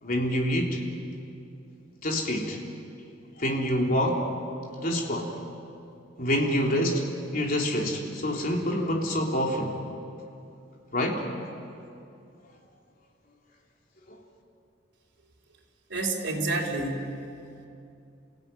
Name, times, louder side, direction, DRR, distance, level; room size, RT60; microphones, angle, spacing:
voice 1, 0.0-0.8 2.0-2.6 3.4-4.2 4.8-5.3 6.2-9.7 10.9-11.2 14.1-14.2, equal, 50° left, 0 dB, 3.5 m, -26 dB
voice 2, 15.9-17.2, right 2 dB, 65° right, -1 dB, 4.1 m, -29 dB
29.0 x 16.5 x 9.2 m, 2.6 s
head